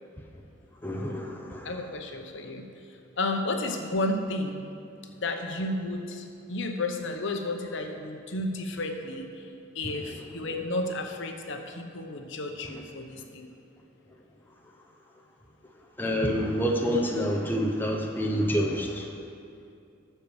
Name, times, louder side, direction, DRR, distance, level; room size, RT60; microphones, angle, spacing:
voice 1, 0.8-1.7 16.0-19.1, equal, 10° left, 1 dB, 0.7 m, -27 dB
voice 2, 1.6-4.6 5.2-9.5 9.7-13.5, left 2 dB, 65° left, 4 dB, 0.8 m, -32 dB
12.0 x 4.6 x 7.0 m, 2.5 s
head